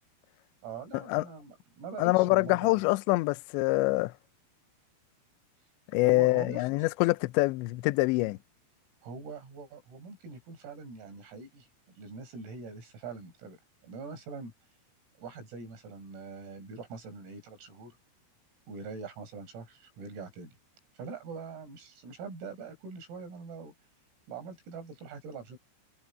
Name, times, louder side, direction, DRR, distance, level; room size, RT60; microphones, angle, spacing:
voice 1, 0.6-2.8 6.0-6.7 9.0-11.7 12.0-14.5 15.2-18.0 18.7-20.6 21.0-23.7 24.3-25.6, right 5 dB, 85° right, 9.3 m, -43 dB
voice 2, 2.0-4.1 5.9-8.4, left 22 dB, 90° left, 2.5 m, -25 dB
omnidirectional pair, 6.0 m